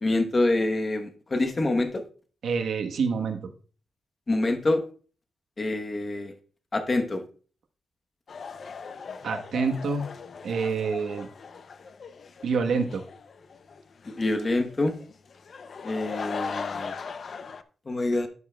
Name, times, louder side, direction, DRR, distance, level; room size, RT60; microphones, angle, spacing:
voice 1, 0.0-2.0 4.3-4.8 5.6-6.3 6.7-7.2 14.1-15.0 15.8-16.9 17.9-18.3, left 2 dB, 25° left, 6 dB, 0.9 m, -26 dB
voice 2, 2.4-3.5 9.2-10.1 10.4-11.3 12.4-13.0, right 5 dB, 75° right, 5 dB, 1.1 m, -27 dB
sound 1, 8.3-17.6, left 5 dB, 45° left, 0.5 m, -39 dB
12.0 x 7.1 x 2.2 m, 0.40 s
wide cardioid pair, 170°, 0 cm